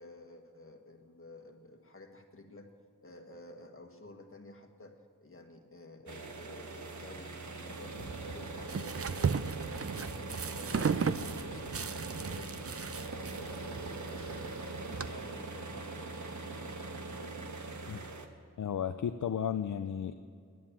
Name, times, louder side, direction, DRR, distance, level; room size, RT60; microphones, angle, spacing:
voice 1, 0.0-2.7 3.0-9.6 9.9-18.3, left 2 dB, 40° left, 4 dB, 1.6 m, -52 dB
sound 1, 6.1-18.3, right 3 dB, 65° right, 1.3 m, -42 dB
sound 2, 8.0-15.1, right 6 dB, 45° right, 0.6 m, -36 dB
voice 2, 18.6-20.1, left 8 dB, 65° left, 9 dB, 0.5 m, -33 dB
11.0 x 9.6 x 8.6 m, 2.3 s
wide cardioid pair, 65°, 32 cm